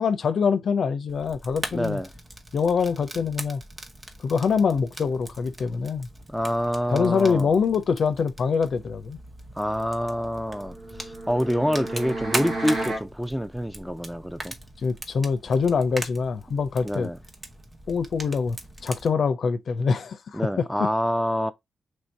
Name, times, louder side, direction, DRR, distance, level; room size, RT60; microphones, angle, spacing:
voice 1, 0.0-2.0 2.5-3.6 4.2-6.1 6.9-9.2 14.8-17.1 17.9-18.6 18.8-20.7, left 5 dB, 70° left, 0.5 m, -24 dB
Fire, 1.1-19.1, right 1 dB, 30° right, 0.8 m, -40 dB
voice 2, 1.7-2.1 6.3-7.5 9.6-14.5 16.8-17.2 20.3-21.5, equal, ahead, 0.4 m, -27 dB
sound 1, 10.5-13.1, right 2 dB, 75° right, 1.3 m, -33 dB
3.2 x 2.6 x 4.4 m
cardioid pair, 65°, 0 cm